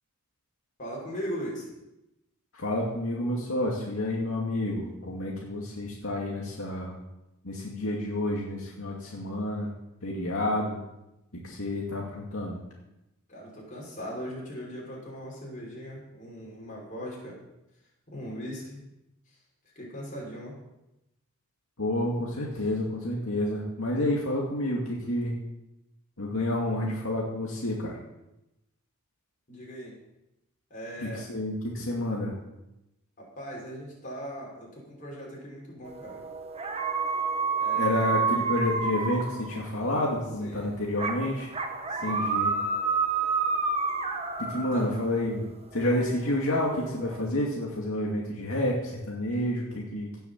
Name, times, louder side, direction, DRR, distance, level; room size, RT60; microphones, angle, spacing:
voice 1, 0.8-1.7 13.3-17.4 18.1-18.8 19.8-20.5 29.5-30.0 30.7-31.3 33.2-36.2 37.6-38.2 40.4-40.7 41.9-42.3 44.5-44.9, equal, 40° left, -3 dB, 5.8 m, -39 dB
voice 2, 2.5-7.0 7.4-9.7 10.0-10.8 11.4-12.6 21.8-25.3 26.2-28.0 31.0-32.3 37.7-41.5 42.0-42.6 44.4-45.4 45.7-50.1, left 1 dB, 75° left, -3 dB, 2.4 m, -29 dB
sound 1, 35.9-39.9 41.0-45.2 45.8-47.3, right 4 dB, 30° right, 1.3 m, -30 dB
17.0 x 7.1 x 7.3 m, 0.93 s
head